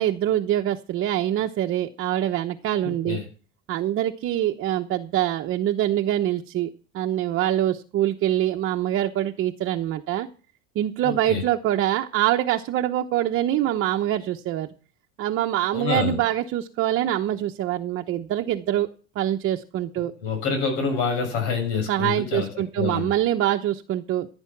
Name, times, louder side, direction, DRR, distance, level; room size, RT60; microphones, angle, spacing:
voice 1, 0.0-3.2 3.7-10.3 10.7-14.7 15.2-18.9 19.1-20.1 21.9-24.3, right 12 dB, 40° right, 1.0 m, -24 dB
voice 2, 2.8-3.3 11.0-11.4 15.7-16.2 20.2-23.1, left 5 dB, 80° left, 6.9 m, -27 dB
16.0 x 9.7 x 6.0 m
cardioid pair, 150°, 34 cm